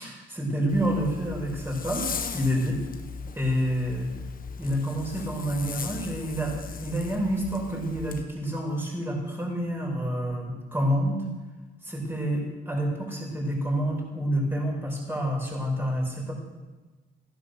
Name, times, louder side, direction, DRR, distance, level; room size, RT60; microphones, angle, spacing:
voice 1, 0.0-2.8 3.3-4.1 4.6-11.2 11.8-16.3, equal, 10° right, -2 dB, 6.4 m, -28 dB
Zipper (clothing), 0.7-8.2, left 5 dB, 45° left, 1.5 m, -38 dB
15.5 x 11.5 x 6.9 m, 1.2 s
cardioid pair, 90°, 20 cm